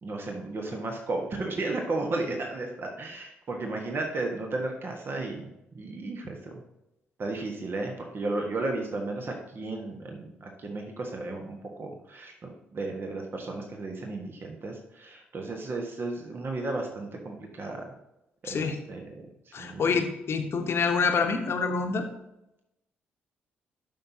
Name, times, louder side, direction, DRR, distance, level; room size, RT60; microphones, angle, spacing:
voice 1, 0.0-6.6 7.2-17.8 18.4-19.9, right 2 dB, 40° right, 1 dB, 1.4 m, -34 dB
voice 2, 18.4-18.8 19.5-22.1, left 5 dB, 50° left, 6 dB, 1.1 m, -27 dB
12.5 x 5.7 x 2.8 m, 0.89 s
figure-of-eight pair, 40°, 6 cm